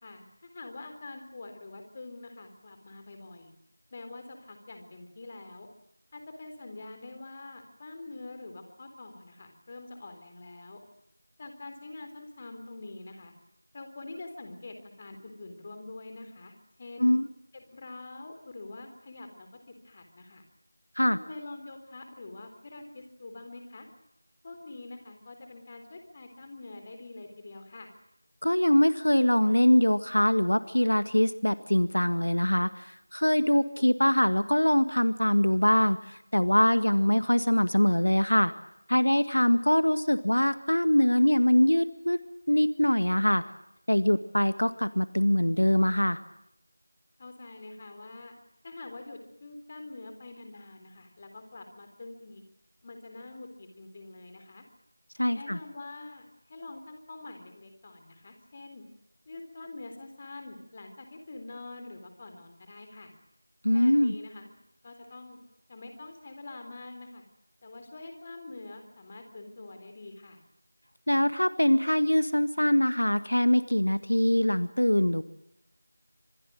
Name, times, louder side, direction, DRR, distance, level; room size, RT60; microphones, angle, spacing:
voice 1, 0.0-3.5 3.9-5.7 6.1-10.8 11.4-13.3 13.7-17.1 17.5-19.5 19.8-20.4 21.1-23.9 24.4-28.0 47.2-48.3 48.6-52.4 52.8-54.6 55.3-58.9 59.3-63.1 63.7-64.5 64.8-65.4 65.7-67.2 67.6-70.4, left 2 dB, 25° left, 6 dB, 3.7 m, -45 dB
voice 2, 28.4-38.5 38.9-42.2 42.5-43.4 43.9-46.2 55.2-55.6 63.6-64.1 71.1-75.2, left 1 dB, 85° left, 12 dB, 1.8 m, -23 dB
27.0 x 22.5 x 7.7 m, 0.80 s
figure-of-eight pair, 175°, 0 cm